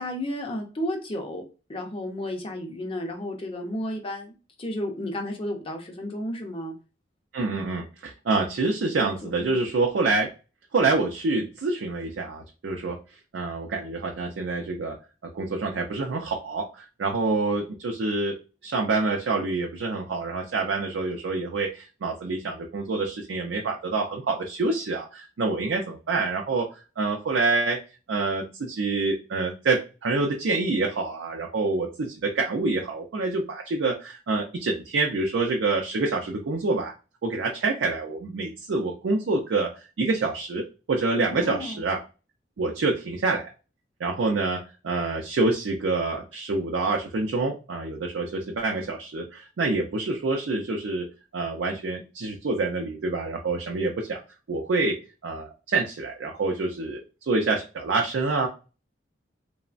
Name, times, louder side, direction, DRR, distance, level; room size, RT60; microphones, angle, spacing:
voice 1, 0.0-1.4 1.7-6.7 9.0-9.6 41.2-41.8, left 1 dB, 30° left, 2 dB, 0.6 m, -33 dB
voice 2, 7.3-10.3 10.7-13.0 13.3-15.0 15.3-18.4 18.6-27.8 28.1-36.9 37.2-39.7 40.0-42.0 42.6-43.5 44.0-54.2 54.5-58.5, right 3 dB, 75° right, 1 dB, 0.4 m, -27 dB
3.1 x 2.0 x 2.4 m, 0.32 s
head